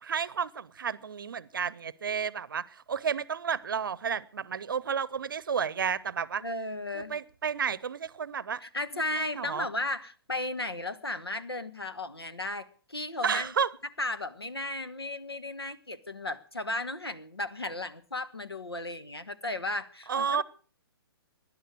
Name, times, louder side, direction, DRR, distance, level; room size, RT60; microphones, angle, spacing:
voice 1, 0.0-6.4 6.9-8.6 8.9-9.7 13.2-13.7 20.1-20.4, right 7 dB, 60° right, 0.7 m, -31 dB
voice 2, 6.4-7.1 8.6-13.5 14.0-20.4, left 2 dB, 80° left, 1.3 m, -35 dB
17.5 x 11.0 x 6.4 m
figure-of-eight pair, 125°, 13 cm